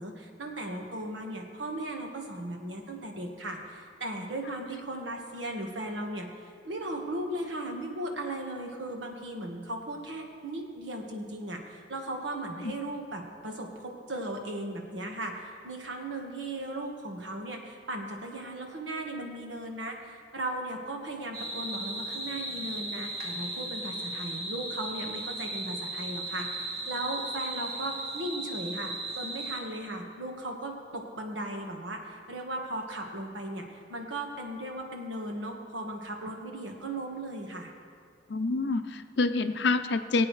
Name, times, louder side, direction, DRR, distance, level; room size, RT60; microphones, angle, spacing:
voice 1, 0.0-37.7, right 1 dB, 75° right, 2 dB, 1.5 m, -37 dB
sound 1, 21.3-29.6, right 2 dB, 55° right, 1.7 m, -36 dB
voice 2, 38.3-40.3, left 3 dB, 65° left, 9 dB, 0.6 m, -27 dB
21.5 x 8.6 x 3.2 m, 2.1 s
head